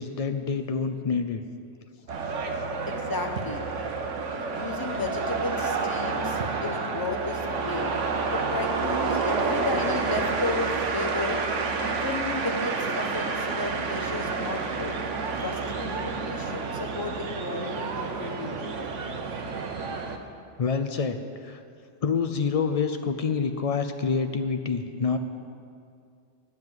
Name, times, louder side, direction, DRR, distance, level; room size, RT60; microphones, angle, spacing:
voice 1, 0.0-1.4 2.5-2.7 20.6-21.6 22.0-25.2, left 5 dB, 70° left, 7 dB, 0.3 m, -27 dB
sound 1, 2.1-20.2, right 4 dB, 80° right, 1.1 m, -29 dB
voice 2, 2.9-3.6 4.5-7.9 8.3-15.0 15.4-18.7, left 3 dB, 20° left, 3 dB, 0.8 m, -33 dB
9.4 x 7.9 x 7.4 m, 2.3 s
omnidirectional pair, 1.2 m